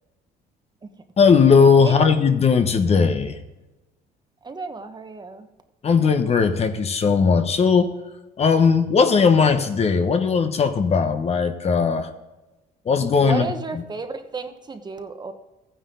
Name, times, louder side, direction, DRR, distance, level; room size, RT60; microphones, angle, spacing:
voice 1, 1.2-3.4 5.8-7.9 8.4-12.1 12.8-13.8, left 5 dB, 40° left, 8 dB, 1.1 m, -18 dB
voice 2, 4.4-5.5 13.2-15.3, right 3 dB, 25° right, 7 dB, 1.2 m, -32 dB
14.5 x 9.8 x 3.8 m, 1.1 s
cardioid pair, 110°, 17 cm